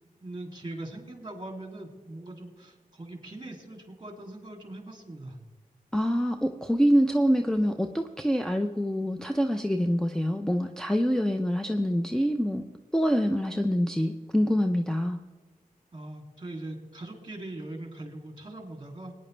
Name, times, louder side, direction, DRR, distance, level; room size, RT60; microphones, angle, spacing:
voice 1, 0.2-5.4 15.9-19.1, right 1 dB, 30° right, 2 dB, 2.7 m, -41 dB
voice 2, 5.9-12.6 12.9-15.2, equal, 5° left, 4 dB, 0.6 m, -25 dB
19.5 x 9.7 x 3.3 m, 1.3 s
cardioid pair, 55°, 15 cm